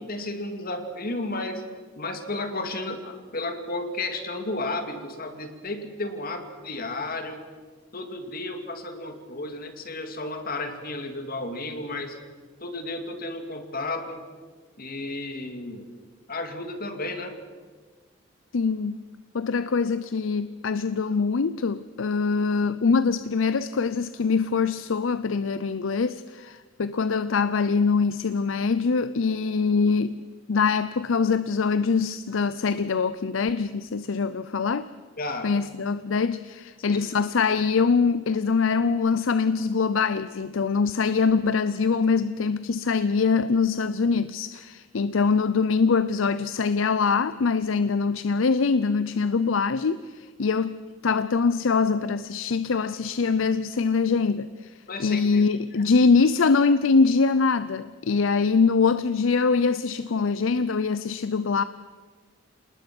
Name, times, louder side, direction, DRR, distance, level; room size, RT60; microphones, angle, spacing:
voice 1, 0.0-1.6 2.0-7.4 7.9-12.2 12.6-14.2 14.8-15.9 16.3-17.3 35.2-35.5 36.8-37.0 54.9-55.4 55.8-55.9, left 2 dB, 50° left, 2.4 m, -33 dB
voice 2, 18.5-19.0 19.3-30.2 30.5-34.9 35.4-61.6, left 4 dB, 85° left, 0.6 m, -23 dB
27.5 x 19.5 x 6.1 m
head